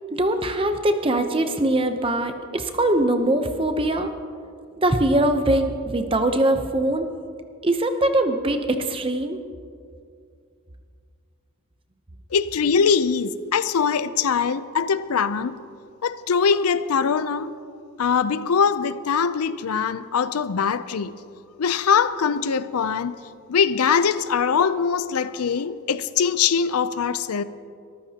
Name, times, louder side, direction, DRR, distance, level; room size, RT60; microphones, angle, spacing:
voice 1, 0.1-4.1 4.8-7.1 7.6-9.4, right 1 dB, 25° right, 0.7 m, -22 dB
voice 2, 12.3-15.6 16.0-17.5 18.0-21.2 21.6-23.1 23.5-27.4, left 6 dB, 80° left, 0.5 m, -22 dB
23.5 x 14.0 x 2.9 m
head